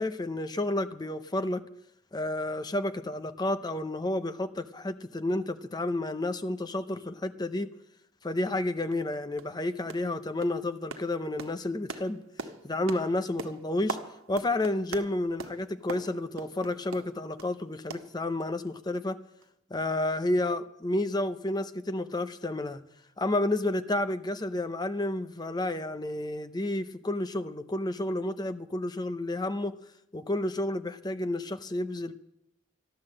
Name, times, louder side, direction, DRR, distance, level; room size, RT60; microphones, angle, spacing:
voice 1, 0.0-1.6 2.1-7.7 8.2-12.2 12.6-14.0 14.3-19.2 19.7-22.8 23.2-29.7 30.1-32.1, left 1 dB, 20° left, 11 dB, 0.6 m, -31 dB
sound 1, 8.4-8.5 8.9-9.1 9.4-9.6 9.9-10.2 10.4-17.6 17.9-18.7 18.9-19.1 19.4-19.5, right 3 dB, 85° right, 1.2 m, -42 dB
12.5 x 12.5 x 7.6 m, 0.79 s
head